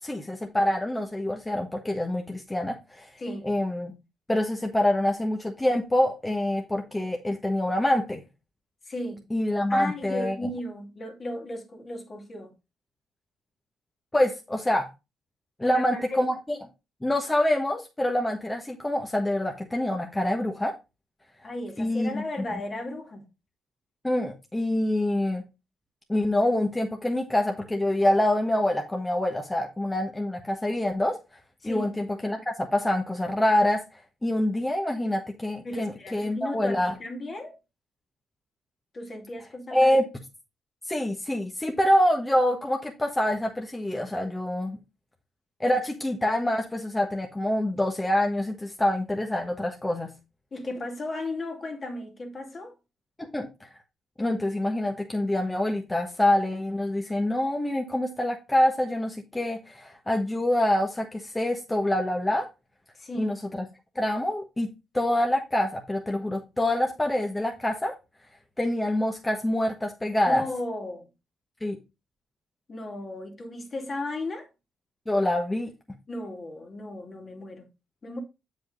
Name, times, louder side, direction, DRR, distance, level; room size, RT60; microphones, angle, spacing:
voice 1, 0.0-3.1 3.4-3.9 4.3-8.2 9.3-10.5 14.1-14.9 15.6-16.6 17.0-20.7 21.8-22.2 24.0-25.4 26.1-31.2 31.6-33.8 34.2-36.9 39.7-40.1 40.9-44.8 45.6-50.1 53.2-53.7 54.2-62.5 63.2-63.6 63.9-64.7 64.9-68.0 68.6-70.4 71.6-71.8 75.1-75.7, left 1 dB, 15° left, 1.3 m, -26 dB
voice 2, 3.2-3.5 8.9-9.2 9.7-12.5 15.6-16.2 21.4-23.2 31.6-31.9 35.6-37.6 38.9-39.9 50.5-52.7 62.9-63.4 70.3-71.1 72.7-74.5 76.1-77.7 78.0-78.2, left 1 dB, 40° left, 2.4 m, -35 dB
7.6 x 5.2 x 3.9 m
cardioid pair, 75°, 0 cm